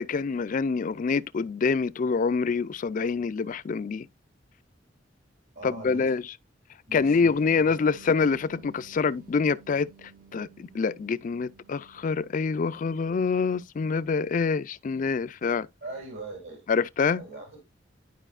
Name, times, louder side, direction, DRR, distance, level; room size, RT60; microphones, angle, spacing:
voice 1, 0.0-4.1 5.6-6.2 6.9-15.7 16.7-17.2, left 5 dB, 45° left, 0.4 m, -26 dB
voice 2, 5.5-6.1 6.9-8.1 15.8-16.6 17.2-17.6, right 2 dB, 75° right, 2.4 m, -42 dB
sound 1, 7.0-13.4, right 6 dB, 50° right, 0.6 m, -54 dB
11.0 x 4.9 x 2.4 m
head